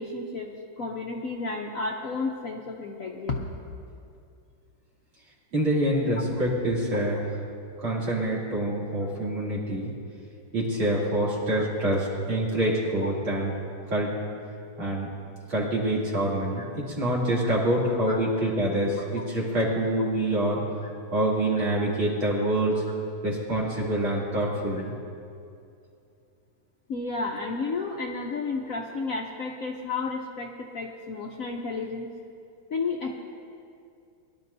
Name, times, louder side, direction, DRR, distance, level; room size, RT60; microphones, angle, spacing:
voice 1, 0.0-3.5 11.6-11.7 13.0-13.1 17.4-17.5 18.1-18.2 26.9-32.1 32.7-33.2, left 3 dB, 60° left, 0 dB, 0.9 m, -32 dB
voice 2, 5.5-7.2 7.8-9.9 10.5-13.5 13.9-14.1 14.8-15.1 15.5-20.6 21.1-22.8 23.2-24.9, right 1 dB, 75° right, -3 dB, 3.6 m, -26 dB
23.0 x 12.0 x 2.7 m, 2.5 s
omnidirectional pair, 2.2 m